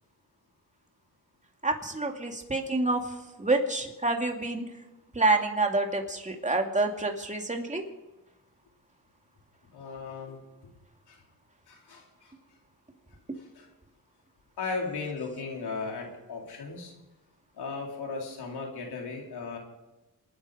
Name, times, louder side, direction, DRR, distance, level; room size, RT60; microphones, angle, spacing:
voice 1, 1.6-4.6 5.1-7.8 13.3-13.4, right 2 dB, 20° right, 3 dB, 2.5 m, -28 dB
voice 2, 9.7-10.7 11.1-11.2 11.7-12.3 13.4-13.7 14.6-16.9 17.6-19.6, left 4 dB, 90° left, 0 dB, 3.9 m, -37 dB
27.0 x 10.5 x 5.1 m, 1.0 s
cardioid pair, 80°, 38 cm